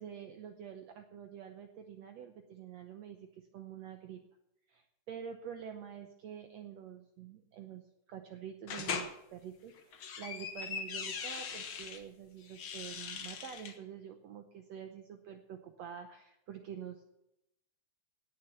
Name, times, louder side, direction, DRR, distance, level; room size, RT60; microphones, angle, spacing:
voice 1, 0.0-4.2 4.7-17.0, right 8 dB, 75° right, 6 dB, 1.6 m, -47 dB
sound 1, 8.7-9.1 9.8-12.0 12.5-13.7, left 6 dB, 60° left, 1.3 m, -40 dB
18.0 x 6.8 x 6.8 m, 0.84 s
omnidirectional pair, 4.0 m